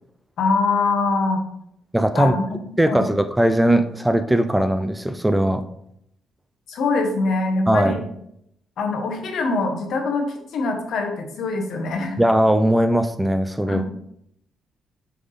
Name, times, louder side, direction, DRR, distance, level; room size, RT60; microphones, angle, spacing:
voice 1, 0.4-1.4 2.1-3.1 6.7-8.1 8.8-12.2 13.7-13.8, left 3 dB, 70° left, 3 dB, 1.2 m, -23 dB
voice 2, 1.9-2.3 2.8-5.6 7.7-7.9 12.2-13.8, right 1 dB, 5° right, 10 dB, 0.4 m, -19 dB
6.6 x 3.6 x 4.0 m, 0.75 s
cardioid pair, 90°, 0 cm